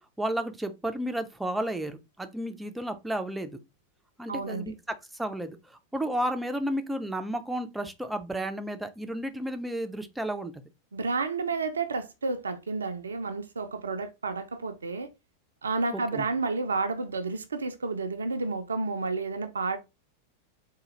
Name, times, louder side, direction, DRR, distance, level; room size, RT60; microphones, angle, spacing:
voice 1, 0.2-3.6 4.2-10.5 15.9-16.2, right 1 dB, 5° right, 0.5 m, -32 dB
voice 2, 4.3-4.6 10.9-15.1 15.6-19.8, right 3 dB, 70° right, 0.4 m, -31 dB
3.8 x 2.3 x 3.1 m
figure-of-eight pair, 90°, 0 cm